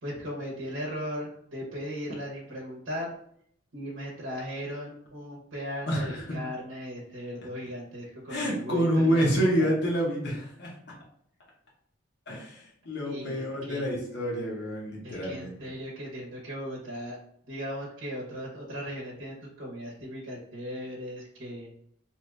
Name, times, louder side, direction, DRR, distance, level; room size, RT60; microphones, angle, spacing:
voice 1, 0.0-3.1 3.7-9.7 13.0-13.8 15.0-17.2 17.5-21.7, equal, 70° right, -4 dB, 0.8 m, -37 dB
voice 2, 5.9-6.4 8.3-10.8 12.3-15.6, equal, 55° left, -4 dB, 0.7 m, -28 dB
2.7 x 2.4 x 3.2 m, 0.68 s
head